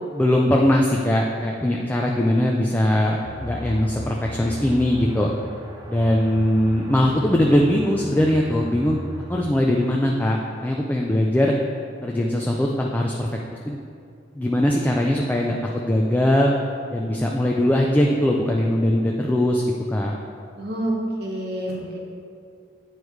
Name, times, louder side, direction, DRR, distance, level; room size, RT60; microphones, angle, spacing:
voice 1, 0.1-5.3 5.9-9.0 9.3-10.4 10.6-11.5 12.0-13.8 14.4-15.6 15.8-16.5 16.9-19.6 19.9-20.1, left 1 dB, 10° left, -1 dB, 0.3 m, -21 dB
sound 1, 3.2-10.0, equal, 20° right, 0.7 m, -37 dB
voice 2, 20.6-22.0, right 1 dB, 60° right, -2 dB, 1.2 m, -28 dB
8.9 x 4.7 x 3.2 m, 2.3 s
head